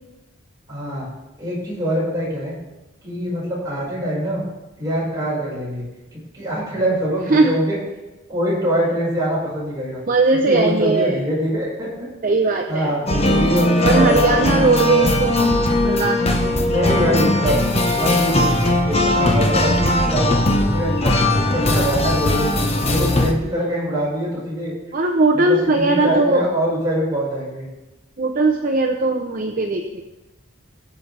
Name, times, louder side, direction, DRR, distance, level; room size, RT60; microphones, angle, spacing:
voice 1, 0.7-1.1 1.4-2.6 3.0-4.4 4.8-5.8 6.1-7.8 8.3-10.0 10.4-12.1 12.7-14.6 16.6-17.6 17.9-18.6 18.8-22.5 22.9-24.7 25.3-27.7, equal, 20° right, -7 dB, 5.2 m, -23 dB
voice 2, 10.1-11.2 12.2-13.0 13.8-16.5 24.9-26.4 28.2-30.0, right 3 dB, 45° right, 2 dB, 0.8 m, -19 dB
sound 1, 13.1-23.3, left 1 dB, 30° left, 1.1 m, -19 dB
22.0 x 7.4 x 3.4 m, 1.0 s
head